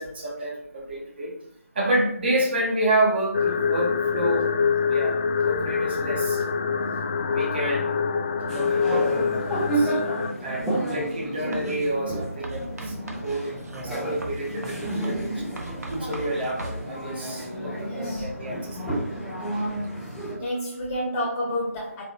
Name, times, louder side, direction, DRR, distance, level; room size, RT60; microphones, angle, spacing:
voice 1, 0.0-1.3 1.7-5.2 5.4-6.7 7.3-8.0 8.5-9.9 10.4-15.3 15.9-18.8, right 1 dB, 40° right, -2 dB, 1.4 m, -29 dB
sound 1, 3.3-10.3, left 6 dB, 35° left, 0.3 m, -25 dB
sound 2, 8.5-20.4, right 1 dB, ahead, 0.7 m, -31 dB
Writing, 11.5-11.9 12.4-16.8, right 1 dB, 75° right, 1.0 m, -38 dB
voice 2, 17.9-18.3 20.4-22.0, equal, 15° left, -5 dB, 1.4 m, -30 dB
4.7 x 4.1 x 2.6 m, 0.70 s
figure-of-eight pair, 160°, 8 cm